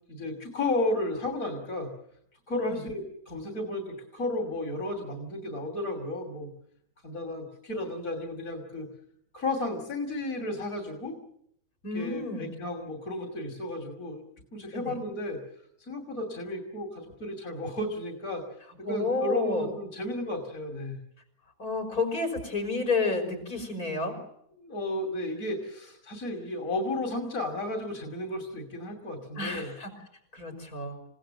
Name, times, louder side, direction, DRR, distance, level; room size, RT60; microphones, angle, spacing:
voice 1, 0.1-1.9 2.5-6.5 7.0-8.9 9.3-11.2 11.9-14.2 14.5-15.4 15.9-18.4 18.9-21.0 24.6-29.7, left 1 dB, 65° left, 4 dB, 3.2 m, -33 dB
voice 2, 11.8-12.5 14.7-15.0 18.8-19.7 21.6-24.1 29.4-29.9 30.3-31.0, left 3 dB, 90° left, 2 dB, 6.2 m, -30 dB
29.0 x 17.5 x 7.7 m, 0.73 s
omnidirectional pair, 1.5 m